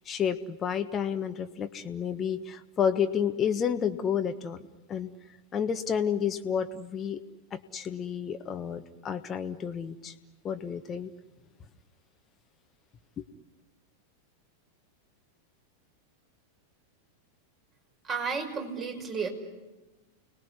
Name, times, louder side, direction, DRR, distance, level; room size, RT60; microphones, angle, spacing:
voice 1, 0.0-4.6 4.9-5.1 5.5-7.2 7.5-10.1 10.4-11.1 13.2-13.3, left 8 dB, 25° left, 7 dB, 1.4 m, -30 dB
voice 2, 18.0-19.3, right 5 dB, 25° right, 3 dB, 5.6 m, -32 dB
30.0 x 20.0 x 9.8 m, 1.2 s
figure-of-eight pair, 90°, 0 cm